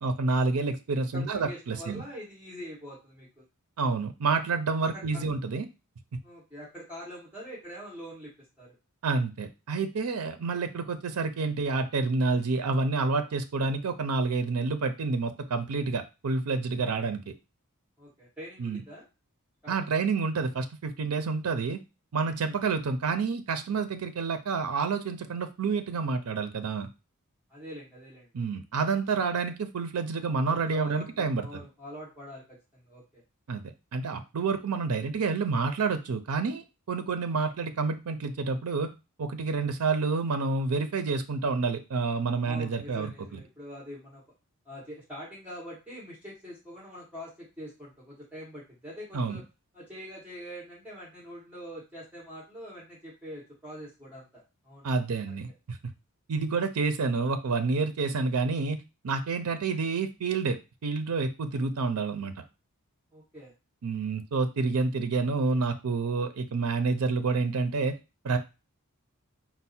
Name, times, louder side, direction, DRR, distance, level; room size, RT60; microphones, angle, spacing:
voice 1, 0.0-2.0 3.8-5.7 9.0-17.2 18.6-18.8 19.7-21.8 22.1-26.9 28.3-31.5 33.5-38.9 39.2-43.4 49.1-49.4 54.8-55.8 56.3-62.3 63.8-67.9 68.2-68.4, right 4 dB, 75° right, 8 dB, 0.5 m, -29 dB
voice 2, 1.1-3.4 4.8-5.2 6.2-8.7 16.8-17.1 18.0-19.0 19.6-20.0 22.4-22.5 27.5-28.3 30.5-33.2 42.4-44.2 44.6-49.4 49.7-54.9 55.3-55.4 63.1-63.5, equal, 5° right, -7 dB, 1.5 m, -44 dB
4.5 x 2.1 x 4.2 m, 0.28 s
head